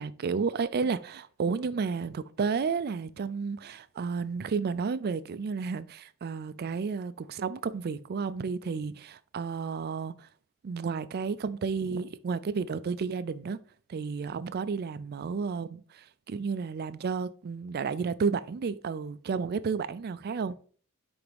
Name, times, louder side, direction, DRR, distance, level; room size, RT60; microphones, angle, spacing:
voice 1, 0.0-10.3 10.6-13.6 13.9-20.6, right 5 dB, 45° right, 0.4 m, -32 dB
8.9 x 3.5 x 3.4 m
head